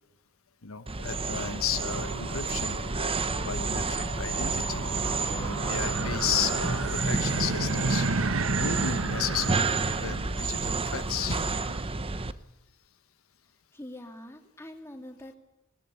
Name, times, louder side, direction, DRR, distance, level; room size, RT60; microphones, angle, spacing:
voice 1, 0.6-2.8 3.4-4.8 5.2-8.1 8.6-11.6, left 8 dB, 85° left, 10 dB, 1.2 m, -34 dB
sound 1, 0.9-12.3, right 3 dB, 25° right, 0.9 m, -30 dB
sound 2, 1.0-9.6, left 4 dB, 60° left, 2.7 m, -46 dB
sound 3, 1.7-11.8, right 3 dB, 75° right, 1.2 m, -34 dB
voice 2, 13.7-15.4, left 1 dB, 10° left, 3 dB, 2.8 m, -44 dB
21.0 x 18.5 x 8.5 m, 0.91 s
head